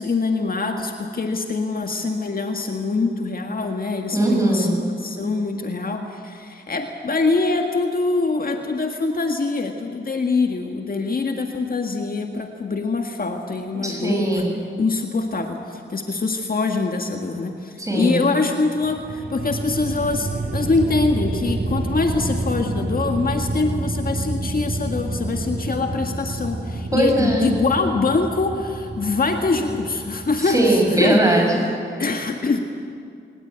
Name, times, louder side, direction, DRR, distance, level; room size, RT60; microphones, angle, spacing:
voice 1, 0.0-4.7 5.0-14.4 14.8-31.2 32.0-32.6, left 3 dB, 45° left, 3 dB, 1.8 m, -24 dB
voice 2, 4.1-4.8 13.8-14.5 17.8-18.2 26.9-27.5 30.4-31.6, right 1 dB, 15° right, -1 dB, 6.6 m, -19 dB
sound 1, 18.8-31.1, right 2 dB, 45° right, 2.4 m, -29 dB
22.0 x 19.0 x 8.9 m, 2.4 s
cardioid pair, 85°, 20 cm